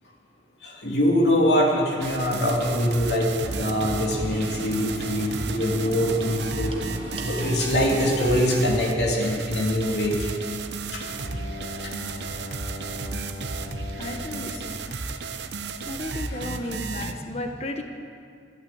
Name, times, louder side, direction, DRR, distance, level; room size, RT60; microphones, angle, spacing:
voice 1, 0.6-6.7 7.2-10.3 10.9-11.1 11.8-11.9, equal, 75° left, -1 dB, 2.9 m, -23 dB
sound 1, 2.0-17.1, right 4 dB, 75° right, 0.8 m, -34 dB
sound 2, 3.4-8.4, equal, 30° right, 1.4 m, -37 dB
Bowed string instrument, 11.0-15.9, left 1 dB, 60° left, 2.0 m, -40 dB
voice 2, 14.0-14.8 15.5-15.6 15.8-17.8, left 1 dB, 35° left, 5 dB, 1.0 m, -34 dB
12.0 x 11.5 x 8.5 m, 2.3 s
head